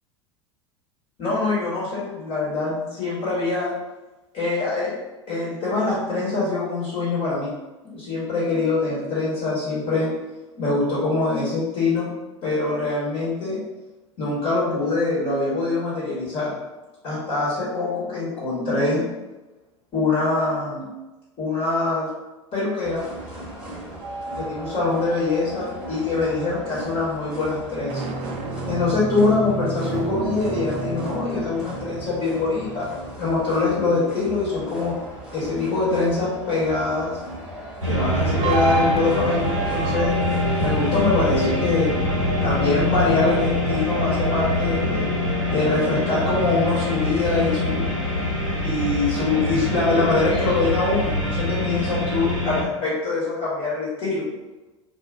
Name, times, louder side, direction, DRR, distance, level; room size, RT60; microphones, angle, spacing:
voice 1, 1.2-3.7 4.3-4.9 5.3-7.5 7.8-10.1 10.6-12.1 12.4-13.6 14.2-16.6 17.0-19.1 19.9-20.9 21.4-22.1 22.5-23.1 24.3-28.0 28.7-32.9 33.2-35.0 35.3-37.2 37.8-40.2 40.6-41.9 42.4-45.1 45.5-47.9 48.6-54.2, left 3 dB, 35° left, -7 dB, 1.2 m, -24 dB
sound 1, 22.8-41.4, right 1 dB, 5° right, 1.1 m, -38 dB
sound 2, 24.0-26.7 27.7-34.5 38.4-42.6, right 3 dB, 40° right, 0.4 m, -31 dB
sound 3, 37.8-52.6, left 1 dB, 85° right, 0.9 m, -24 dB
2.6 x 2.4 x 3.5 m, 1.1 s
figure-of-eight pair, 80°, 16 cm